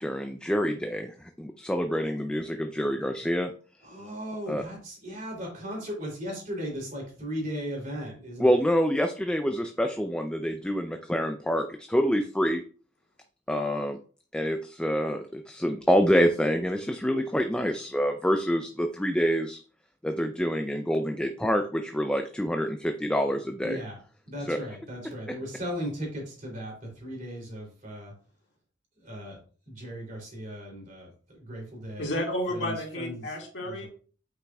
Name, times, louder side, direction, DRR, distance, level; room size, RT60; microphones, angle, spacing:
voice 1, 0.0-3.5 4.5-4.6 8.4-12.6 13.5-14.0 14.3-19.6 20.0-23.8 24.4-24.6, equal, 5° left, 5 dB, 0.4 m, -26 dB
voice 2, 3.8-8.5 23.6-24.0 24.3-26.7 27.0-28.1 29.0-29.4 29.7-31.1 31.4-32.1 32.5-33.3 33.6-33.9, equal, 45° right, -1 dB, 3.1 m, -37 dB
voice 3, 32.0-33.9, left 1 dB, 65° left, 0 dB, 2.1 m, -31 dB
8.5 x 5.9 x 2.3 m, 0.41 s
head